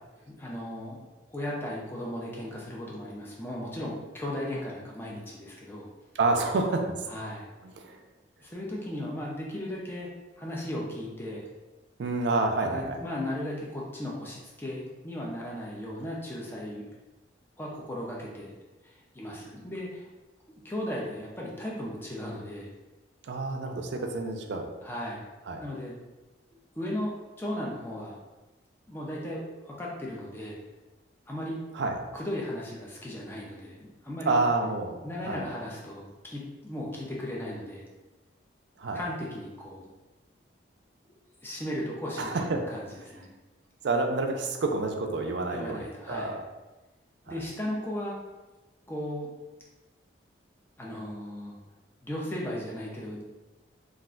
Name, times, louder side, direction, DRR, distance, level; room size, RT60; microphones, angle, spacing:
voice 1, 0.3-1.0 1.3-5.9 7.1-7.5 8.4-10.1 10.4-11.5 12.6-16.9 17.6-18.6 18.8-20.1 20.5-22.7 24.8-25.2 25.6-26.0 26.8-28.2 28.9-30.6 31.3-31.6 32.1-34.4 35.0-37.9 38.9-39.9 41.4-43.3 45.5-46.4 47.3-48.2 48.9-49.3 50.8-51.6 52.0-53.2, left 1 dB, 10° left, -4 dB, 0.4 m, -36 dB
voice 2, 6.2-6.9 7.6-8.0 12.0-13.0 23.3-24.7 25.5-25.6 31.7-32.0 34.3-35.0 35.3-35.4 38.8-39.0 42.2-42.6 43.8-46.4 47.3-47.4, right 3 dB, 65° right, 4 dB, 0.4 m, -28 dB
2.4 x 2.2 x 3.7 m, 1.1 s
head